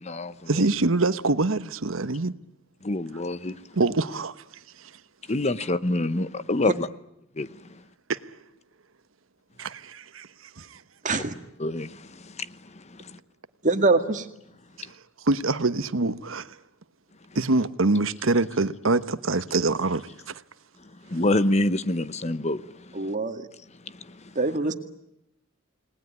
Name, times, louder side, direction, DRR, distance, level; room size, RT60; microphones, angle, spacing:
voice 1, 0.5-2.3 3.7-4.3 4.8-4.9 8.1-8.2 9.6-10.3 10.6-10.8 15.2-16.6 17.3-20.4, right 3 dB, 80° right, 1.2 m, -25 dB
voice 2, 2.9-3.5 5.3-6.9 7.4-7.5 11.6-11.9 21.1-22.6, left 2 dB, 35° left, 1.0 m, -25 dB
voice 3, 13.6-14.3 22.9-23.4 24.4-24.7, right 3 dB, 40° right, 2.1 m, -23 dB
29.5 x 20.0 x 9.6 m
head